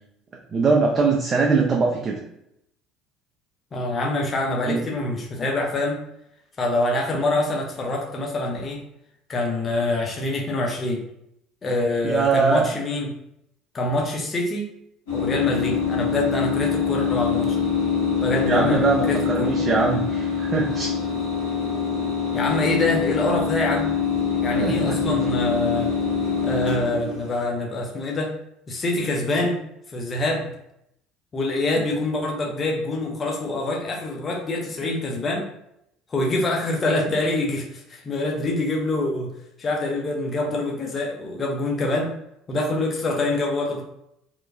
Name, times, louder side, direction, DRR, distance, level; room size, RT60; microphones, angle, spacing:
voice 1, 0.5-2.2 4.7-4.8 12.0-12.6 18.5-20.9 24.5-25.2, right 4 dB, 30° right, -1 dB, 0.4 m, -22 dB
voice 2, 3.7-6.0 6.6-8.8 9.3-11.0 11.6-13.1 13.7-14.7 15.1-17.7 18.2-19.5 22.3-23.9 24.4-25.9 26.4-28.3 28.7-29.6 29.9-30.6 31.3-35.5 36.1-39.3 39.6-42.1 42.5-43.8, left 2 dB, 30° left, 0 dB, 0.5 m, -25 dB
sound 1, 15.1-27.4, left 6 dB, 75° left, 1.4 m, -24 dB
2.8 x 2.2 x 2.4 m, 0.78 s
figure-of-eight pair, 60°, 0 cm